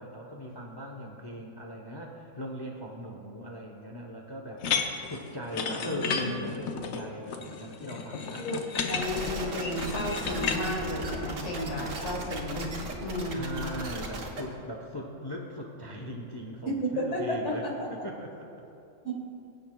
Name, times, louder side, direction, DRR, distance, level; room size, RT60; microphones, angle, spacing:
voice 1, 0.0-4.7 5.0-8.5 13.3-17.7 18.0-18.5, equal, 25° left, 0 dB, 0.6 m, -39 dB
sound 1, 4.6-10.6, left 6 dB, 85° left, 1.1 m, -33 dB
voice 2, 5.9-6.3 8.4-8.6 8.9-12.7 13.0-13.5 16.8-17.9 19.0-19.1, left 1 dB, 60° left, -1 dB, 1.9 m, -32 dB
sound 2, 9.0-14.4, right 2 dB, 70° right, 1.4 m, -36 dB
22.5 x 7.9 x 2.3 m, 2.6 s
omnidirectional pair, 1.4 m